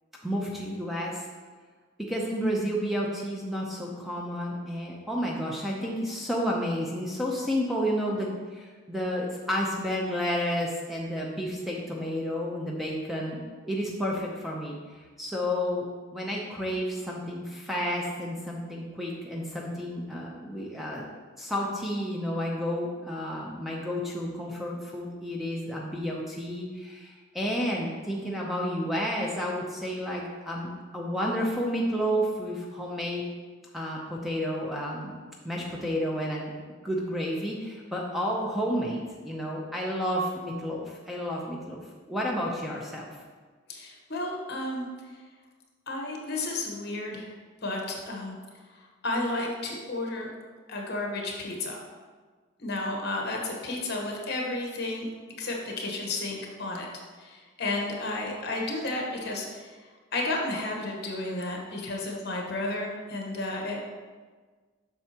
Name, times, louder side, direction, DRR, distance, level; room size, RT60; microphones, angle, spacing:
voice 1, 0.2-1.3 2.0-15.9 16.1-33.3 33.7-35.1 35.4-36.5 36.8-41.8 42.1-43.1, equal, ahead, -3 dB, 0.6 m, -31 dB
voice 2, 43.7-44.9 45.9-47.3 47.6-48.4 48.7-50.3 50.7-51.8 52.6-55.1 55.4-56.9 57.2-59.7 60.1-63.8, left 2 dB, 50° left, 0 dB, 1.1 m, -32 dB
7.8 x 5.8 x 2.9 m, 1.4 s
head